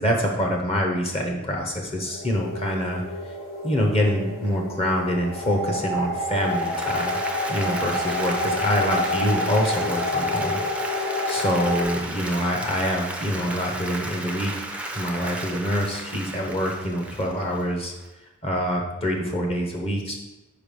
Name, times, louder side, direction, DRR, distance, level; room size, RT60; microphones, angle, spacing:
voice 1, 0.0-3.0 3.6-7.2 7.5-10.6 11.3-14.5 14.9-17.9 18.4-20.2, equal, 30° left, 1 dB, 0.8 m, -25 dB
sound 1, 1.8-11.8, left 1 dB, 90° left, 1.8 m, -28 dB
Applause, 6.3-18.1, right 2 dB, 5° right, 0.5 m, -34 dB
4.9 x 4.8 x 5.2 m, 1.1 s
head